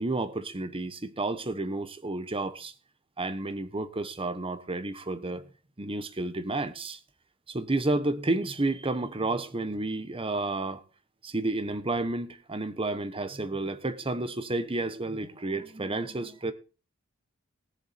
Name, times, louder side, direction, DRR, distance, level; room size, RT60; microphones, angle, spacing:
voice 1, 0.0-2.7 3.2-5.5 5.8-7.0 7.5-10.8 11.2-16.5, right 2 dB, 25° right, 1.1 m, -31 dB
18.0 x 7.0 x 4.3 m
head